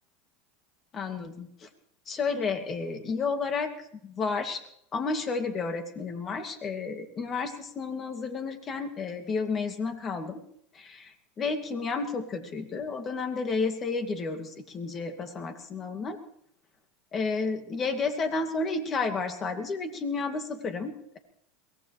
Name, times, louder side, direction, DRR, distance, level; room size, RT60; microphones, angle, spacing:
voice 1, 0.9-1.7 2.1-3.7 4.0-4.6 4.9-10.4 10.7-16.2 17.1-21.2, left 4 dB, 35° left, 6 dB, 2.4 m, -31 dB
23.0 x 18.5 x 3.3 m, 0.70 s
hypercardioid pair, 95°, 0 cm